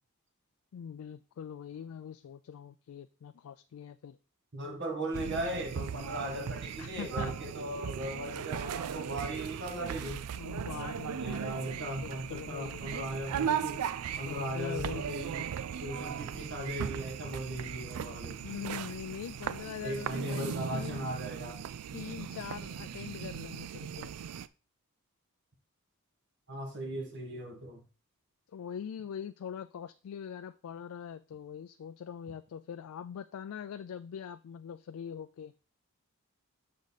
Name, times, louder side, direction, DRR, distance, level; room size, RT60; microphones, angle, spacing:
voice 1, 0.7-4.2 6.8-7.3 10.3-12.8 14.3-15.1 18.4-21.0 21.9-24.1 28.5-35.5, left 8 dB, 75° left, 0.3 m, -42 dB
voice 2, 4.5-10.2 11.2-13.9 14.2-15.5 15.8-18.5 19.8-21.6 26.5-27.9, right 1 dB, 50° right, 1.7 m, -38 dB
sound 1, 5.1-24.5, right 8 dB, 90° right, 0.4 m, -38 dB
6.7 x 4.9 x 4.1 m
head